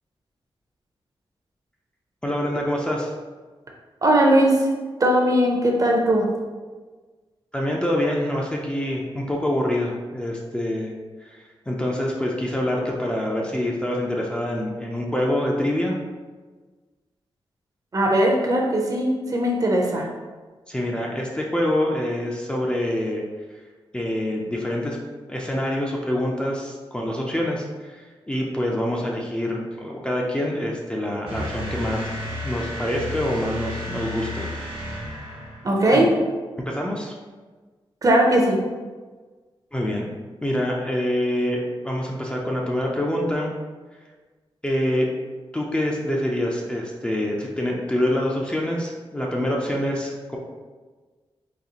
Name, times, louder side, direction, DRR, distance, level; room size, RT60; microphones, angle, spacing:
voice 1, 2.2-3.1 7.5-16.0 20.7-23.2 23.9-25.0 25.3-32.1 32.4-34.5 35.9-36.0 36.7-37.1 39.7-40.0 40.4-43.5 44.6-45.1 45.5-50.4, left 1 dB, 10° left, -2 dB, 0.4 m, -26 dB
voice 2, 4.0-4.7 5.0-6.3 17.9-20.1 35.6-36.1 38.0-38.6, right 1 dB, 40° right, 0 dB, 0.6 m, -19 dB
sound 1, 31.3-36.0, left 1 dB, 75° right, 1.0 m, -33 dB
4.0 x 2.9 x 2.8 m, 1.4 s
wide cardioid pair, 140°, 10 cm